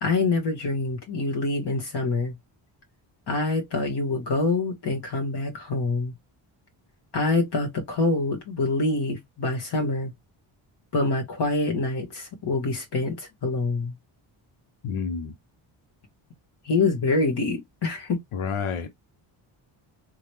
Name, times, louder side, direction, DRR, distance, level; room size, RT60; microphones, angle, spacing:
voice 1, 0.0-2.3 3.3-6.1 7.1-10.1 10.9-13.9 16.6-18.2, left 3 dB, 55° left, 1.3 m, -25 dB
voice 2, 14.8-15.3 18.3-18.9, left 6 dB, 90° left, 0.9 m, -29 dB
3.8 x 2.2 x 3.1 m
cardioid pair, 100°, 49 cm